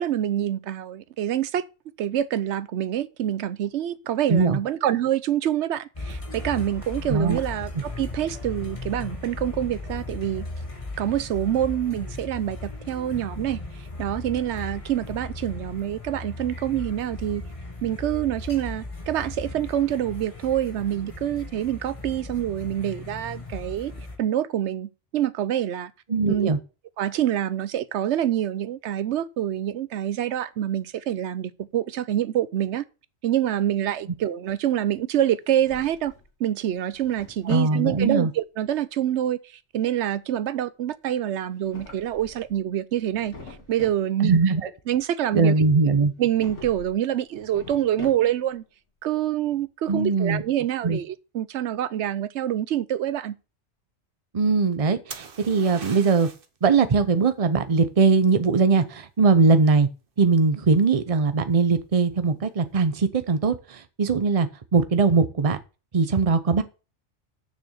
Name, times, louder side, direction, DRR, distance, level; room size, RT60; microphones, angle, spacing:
voice 1, 0.0-1.7 2.0-10.5 11.0-13.6 14.0-17.4 17.8-23.9 24.2-25.9 26.3-26.5 27.0-32.8 33.2-36.1 36.4-43.3 43.7-44.4 44.9-45.5 46.2-48.6 49.0-53.3, right 11 dB, 75° right, 1.0 m, -26 dB
voice 2, 4.3-4.6 7.1-7.4 26.1-26.6 37.5-38.3 44.2-44.7 45.3-46.1 49.9-50.4 50.8-51.0 54.3-56.3 56.6-59.9 60.2-65.6 65.9-66.6, right 4 dB, 35° right, 0.8 m, -21 dB
sound 1, 5.9-24.2, left 2 dB, 30° left, 1.5 m, -37 dB
Drawer open or close, 35.3-36.3 36.7-37.8 41.4-42.6 42.9-44.1 46.2-46.9 47.3-48.5, left 3 dB, 85° left, 2.7 m, -43 dB
sound 2, 55.1-56.6 60.2-60.7, right 5 dB, 50° right, 1.1 m, -41 dB
6.8 x 6.4 x 6.5 m
omnidirectional pair, 1.2 m